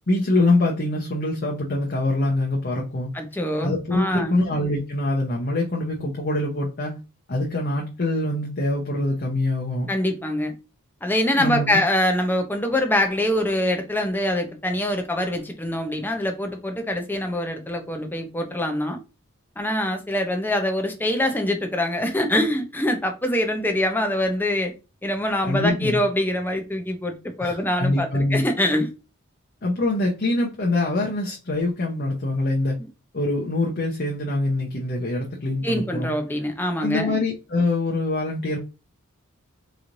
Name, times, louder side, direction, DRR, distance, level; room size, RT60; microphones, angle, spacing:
voice 1, 0.1-3.1 3.6-7.0 7.3-9.9 11.4-11.8 25.4-26.0 27.4-28.4 29.6-32.7 33.1-36.1 36.8-38.6, left 2 dB, 45° left, 0.7 m, -24 dB
voice 2, 3.1-4.4 9.9-10.5 11.0-19.0 19.6-24.7 25.0-28.9 35.6-37.2, left 1 dB, 10° left, 0.6 m, -24 dB
4.0 x 3.1 x 2.5 m
head